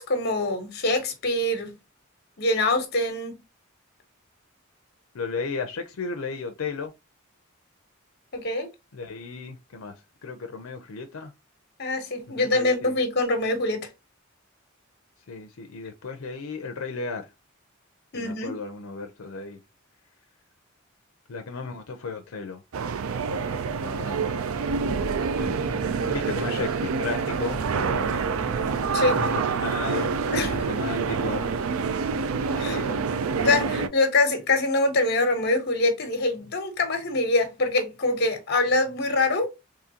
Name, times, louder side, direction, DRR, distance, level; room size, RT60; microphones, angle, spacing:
voice 1, 0.0-1.7 2.4-3.3 8.3-8.7 11.8-13.9 18.1-18.6 28.9-29.2 30.3-30.5 32.5-32.8 33.4-39.5, left 2 dB, 55° left, 1.0 m, -24 dB
voice 2, 5.1-6.9 8.9-10.0 10.2-11.3 12.4-13.0 15.3-17.2 18.1-19.6 21.3-22.6 23.3-24.4 25.4-25.7 26.1-28.3 29.2-30.1 30.4-31.5 32.7-33.9, left 4 dB, 90° left, 0.5 m, -35 dB
sound 1, 22.7-33.9, right 5 dB, 90° right, 0.4 m, -27 dB
sound 2, 24.4-30.6, right 1 dB, 25° right, 1.1 m, -39 dB
3.7 x 3.0 x 2.8 m
head